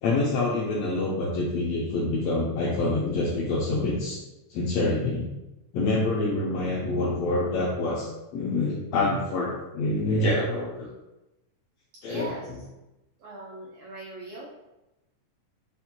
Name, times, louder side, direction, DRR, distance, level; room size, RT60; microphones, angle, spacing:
voice 1, 0.0-4.2 4.5-5.3 5.7-10.8 12.0-12.3, left 2 dB, 85° left, -5 dB, 1.5 m, -26 dB
voice 2, 12.0-12.5 13.2-14.5, right 2 dB, 90° right, -4 dB, 1.4 m, -39 dB
5.6 x 2.1 x 2.9 m, 0.98 s
omnidirectional pair, 3.6 m